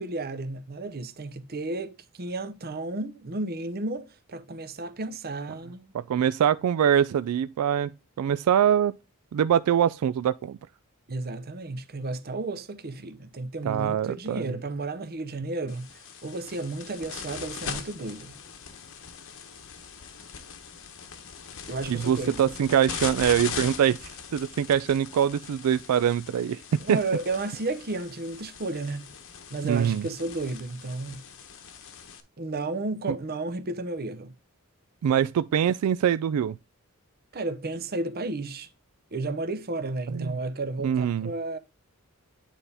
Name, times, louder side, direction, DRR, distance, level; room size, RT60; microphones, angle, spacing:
voice 1, 0.0-5.9 11.1-15.9 16.2-18.3 21.7-22.5 26.8-29.1 29.5-31.2 32.4-34.3 37.3-38.7 39.1-41.6, right 2 dB, 45° right, 0.7 m, -33 dB
voice 2, 5.9-8.9 9.3-10.6 13.6-14.5 21.9-26.6 26.9-27.0 29.6-30.1 35.0-36.6 40.1-40.4 40.8-41.3, right 9 dB, 80° right, 0.3 m, -24 dB
sound 1, 15.7-32.2, left 6 dB, 60° left, 1.0 m, -40 dB
9.1 x 4.2 x 3.4 m
head